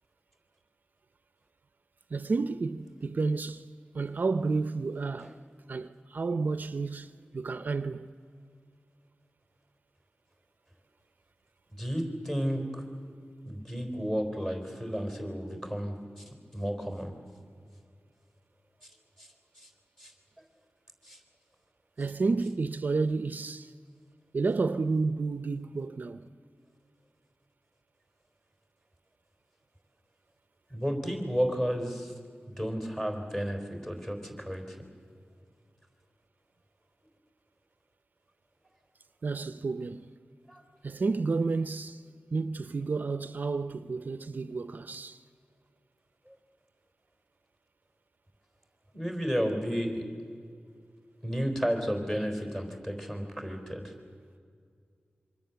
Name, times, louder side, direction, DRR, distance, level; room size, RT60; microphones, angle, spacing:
voice 1, 2.1-3.7 3.9-5.4 5.7-8.1 22.0-23.7 24.3-26.3 39.2-40.1 40.8-42.0 42.3-45.2, right 4 dB, 55° right, 0.6 m, -31 dB
voice 2, 11.8-12.8 13.5-15.9 16.5-17.1 20.0-20.1 21.1-21.2 30.7-32.1 32.5-34.6 40.5-40.6 48.9-50.0 51.2-53.8, equal, 15° left, 3.9 m, -32 dB
27.0 x 24.5 x 7.0 m
wide cardioid pair, 100°, 4 cm